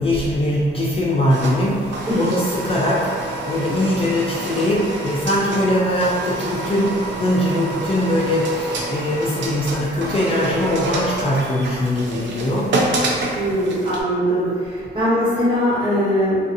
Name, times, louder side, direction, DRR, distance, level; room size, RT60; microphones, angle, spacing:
voice 1, 0.0-13.5, left 1 dB, 30° left, -6 dB, 0.3 m, -21 dB
sound 1, 1.3-14.0, right 2 dB, 75° right, 0.5 m, -28 dB
voice 2, 13.3-16.4, equal, 25° right, -11 dB, 1.2 m, -20 dB
2.6 x 2.3 x 2.6 m, 2.1 s
wide cardioid pair, 135°, 19 cm